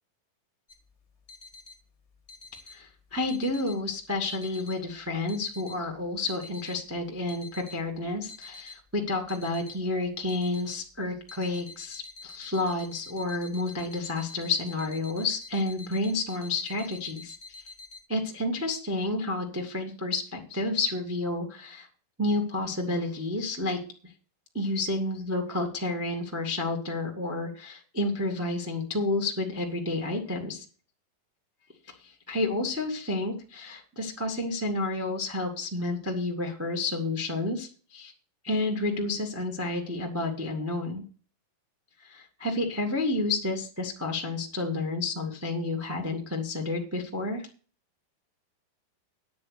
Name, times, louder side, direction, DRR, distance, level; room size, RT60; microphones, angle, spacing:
sound 1, 0.7-18.0, left 3 dB, 35° left, 1.0 m, -48 dB
voice 1, 2.7-17.3 18.1-21.9 22.2-24.1 24.5-30.6 32.0-38.1 38.4-41.0 42.0-47.5, left 2 dB, 15° right, 2 dB, 0.5 m, -30 dB
9.6 x 8.3 x 6.6 m, 0.40 s
omnidirectional pair, 4.2 m